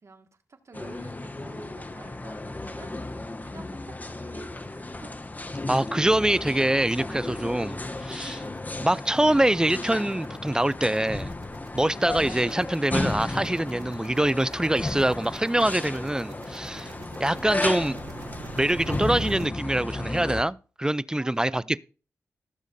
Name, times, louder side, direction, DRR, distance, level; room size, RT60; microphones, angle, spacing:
voice 1, 0.0-3.1 3.4-5.1 21.2-21.7, right 3 dB, 60° right, 2.0 m, -49 dB
sound 1, 0.7-20.4, left 2 dB, 30° left, 1.0 m, -34 dB
sound 2, 4.0-4.1 4.5-4.6 4.9-19.5, right 6 dB, 90° right, 0.9 m, -47 dB
voice 2, 5.7-8.4 8.8-11.3 11.7-16.9 17.2-18.0 18.5-21.8, right 1 dB, 15° right, 0.5 m, -24 dB
16.0 x 7.1 x 2.8 m
cardioid pair, 40°, 6 cm